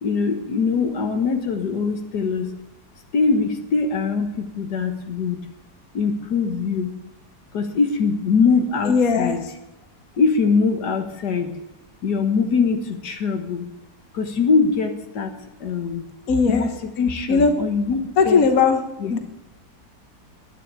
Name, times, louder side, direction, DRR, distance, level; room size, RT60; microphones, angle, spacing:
voice 1, 0.0-2.5 3.1-5.4 5.9-6.9 7.5-9.4 10.2-11.5 12.0-13.7 14.1-16.1 16.5-18.0 18.3-18.4 19.0-19.1, left 5 dB, 80° left, 7 dB, 1.9 m, -22 dB
voice 2, 8.8-9.4 16.3-16.7 17.3-17.5 18.2-18.8 19.1-19.2, left 5 dB, 60° left, 7 dB, 1.6 m, -18 dB
11.0 x 9.5 x 8.9 m, 0.91 s
omnidirectional pair, 1.7 m